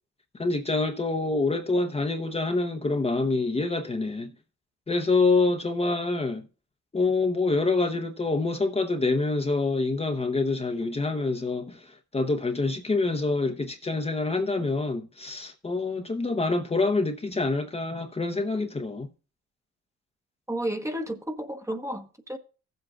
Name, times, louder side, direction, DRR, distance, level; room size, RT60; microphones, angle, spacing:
voice 1, 0.4-4.3 4.9-6.4 6.9-19.1, left 3 dB, 20° left, 0.9 m, -26 dB
voice 2, 20.5-22.4, right 1 dB, 10° right, 1.1 m, -32 dB
15.5 x 7.9 x 2.4 m
cardioid pair, 90°, 30 cm